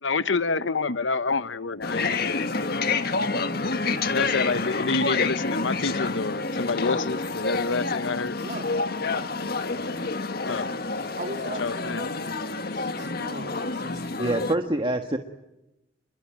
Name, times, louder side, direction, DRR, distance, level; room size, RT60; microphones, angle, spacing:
voice 1, 0.0-3.2 4.1-8.4 10.5-10.7 11.6-12.0, left 3 dB, 90° left, 1.1 m, -28 dB
sound 1, 1.8-14.5, left 3 dB, 55° left, 1.6 m, -28 dB
voice 2, 8.4-9.8 10.2-10.4 10.9-14.7, right 1 dB, 45° right, 2.6 m, -41 dB
voice 3, 14.2-15.2, right 1 dB, 25° right, 1.6 m, -25 dB
28.5 x 22.5 x 9.0 m
head